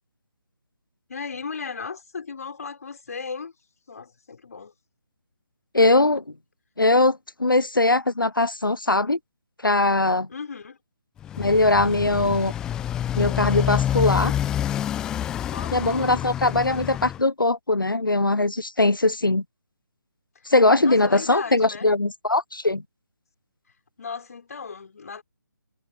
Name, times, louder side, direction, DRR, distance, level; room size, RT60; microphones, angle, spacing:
voice 1, 1.1-3.5 3.9-4.7 10.3-10.8 15.5-16.3 20.8-21.9 24.0-25.2, left 5 dB, 50° left, 3.9 m, -36 dB
voice 2, 5.7-6.2 6.8-9.2 9.6-10.3 11.4-12.5 13.1-14.3 15.7-19.4 20.5-22.8, left 2 dB, 80° left, 0.8 m, -21 dB
Motorcycle, 11.2-17.2, left 10 dB, 5° left, 0.6 m, -27 dB
figure-of-eight pair, 150°, 11 cm